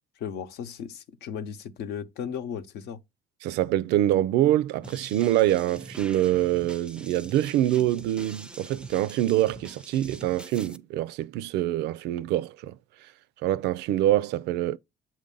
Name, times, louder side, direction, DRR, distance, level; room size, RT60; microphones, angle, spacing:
voice 1, 0.2-3.0, left 7 dB, 75° left, 0.8 m, -36 dB
voice 2, 3.4-12.8 13.4-14.8, right 13 dB, 85° right, 0.4 m, -25 dB
sound 1, 4.8-10.8, right 2 dB, 5° right, 0.4 m, -45 dB
7.4 x 2.5 x 5.3 m
cardioid pair, 110°, 17 cm